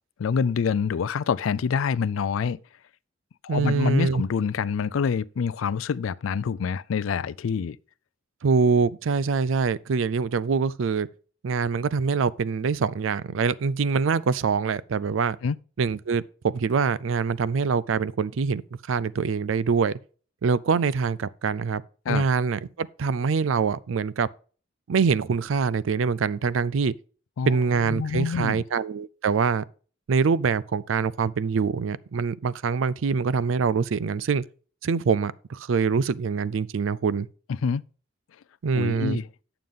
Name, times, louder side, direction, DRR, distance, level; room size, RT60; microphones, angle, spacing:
voice 1, 0.2-2.6 3.4-7.8 15.4-15.6 22.1-22.2 27.4-27.6 27.9-28.6 37.6-37.8 38.7-39.3, left 6 dB, 90° left, 0.4 m, -26 dB
voice 2, 3.5-4.2 8.4-11.1 11.4-15.4 15.8-18.6 18.9-20.0 20.4-21.8 22.1-24.3 24.9-26.9 27.5-29.6 30.1-34.4 34.8-37.3 38.6-39.2, right 5 dB, 80° right, 0.4 m, -24 dB
9.4 x 6.9 x 3.6 m
head